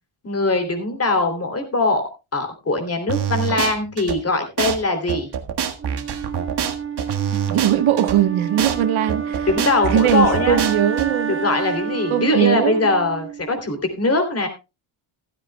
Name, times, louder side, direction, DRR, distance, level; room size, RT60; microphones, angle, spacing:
voice 1, 0.2-2.0 2.3-5.3 9.5-10.6 11.3-14.5, left 2 dB, 30° left, 3.0 m, -21 dB
sound 1, 3.1-4.2 4.6-4.8 5.1-8.2 8.6-8.8 9.1-11.1, right 8 dB, 55° right, 1.7 m, -25 dB
Wind instrument woodwind instrument, 5.8-13.8, right 7 dB, 25° right, 1.6 m, -29 dB
voice 2, 7.3-9.5 9.9-11.4 12.1-12.9, right 10 dB, 80° right, 1.3 m, -20 dB
15.0 x 13.5 x 2.3 m
cardioid pair, 145°, 48 cm